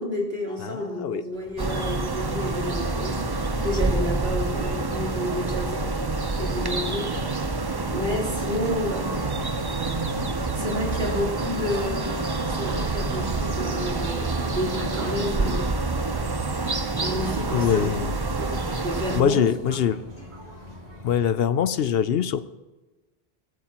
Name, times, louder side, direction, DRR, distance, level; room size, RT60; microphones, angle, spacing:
voice 1, 0.0-5.8 6.4-7.1 7.9-9.6 10.5-15.7 17.0-17.9 18.4-19.4, left 1 dB, 60° right, -3 dB, 3.8 m, -30 dB
voice 2, 0.6-1.2 17.5-18.1 19.1-20.0 21.0-22.4, left 8 dB, 70° left, 14 dB, 0.8 m, -23 dB
sound 1, 1.3-21.2, right 1 dB, 45° right, 2.7 m, -42 dB
sound 2, 1.6-19.2, right 3 dB, 25° right, 0.7 m, -27 dB
sound 3, 4.7-20.7, right 1 dB, 10° left, 4.5 m, -52 dB
22.0 x 13.0 x 3.0 m, 1.1 s
omnidirectional pair, 1.1 m